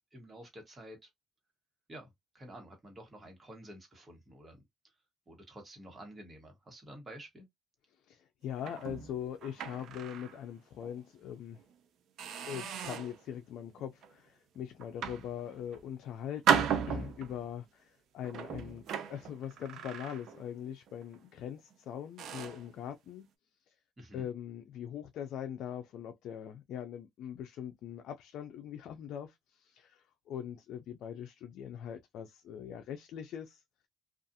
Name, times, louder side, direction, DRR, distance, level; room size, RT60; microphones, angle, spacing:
voice 1, 0.1-1.1 1.9-4.6 5.3-7.5 24.0-24.3, right 1 dB, 20° right, 1.2 m, -50 dB
voice 2, 8.1-11.6 12.5-18.8 19.1-23.3 23.7-23.8 24.1-33.6, left 9 dB, 70° left, 0.4 m, -42 dB
sound 1, 8.6-10.4 10.8-11.0 11.6-11.7 12.2-13.2 13.8-14.1 14.8-15.8 16.5-17.5 18.2-20.6 20.9-21.2 21.7-21.8 22.2-22.7, right 7 dB, 65° right, 0.5 m, -35 dB
2.4 x 2.3 x 2.6 m
cardioid pair, 110°, 0 cm